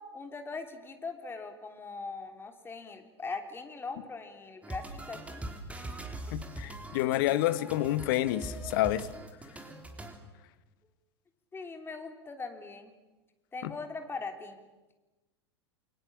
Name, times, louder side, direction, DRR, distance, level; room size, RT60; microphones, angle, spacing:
voice 1, 0.0-5.4 11.5-12.9 13.5-14.6, left 4 dB, 15° left, 5 dB, 3.3 m, -41 dB
sound 1, 4.6-10.2, right 1 dB, 10° right, 3.5 m, -42 dB
voice 2, 6.3-9.1 13.6-13.7, left 15 dB, 50° left, 14 dB, 1.4 m, -29 dB
29.5 x 23.0 x 7.3 m, 1.1 s
figure-of-eight pair, 85°, 14 cm